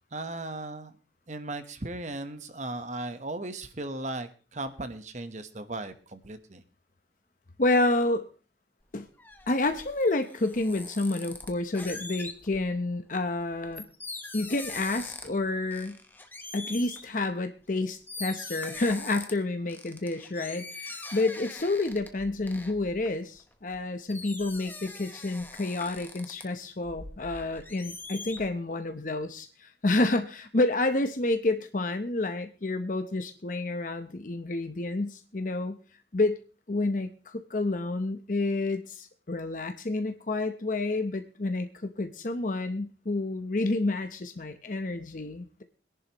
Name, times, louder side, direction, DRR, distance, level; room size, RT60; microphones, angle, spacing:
voice 1, 0.1-0.9 1.3-6.6, right 2 dB, 40° right, 10 dB, 1.1 m, -37 dB
voice 2, 7.6-8.3 8.9-9.1 9.5-13.8 14.3-16.0 16.5-35.8 36.1-36.4 36.7-45.6, left 2 dB, 45° left, 7 dB, 0.8 m, -29 dB
sound 1, 8.8-12.8 13.3-15.4 15.7-17.1 17.7-17.8 18.1-19.3 19.7-23.8 24.1-26.4 26.8-28.5, left 3 dB, 10° left, 1.2 m, -43 dB
22.5 x 10.5 x 3.0 m, 0.35 s
head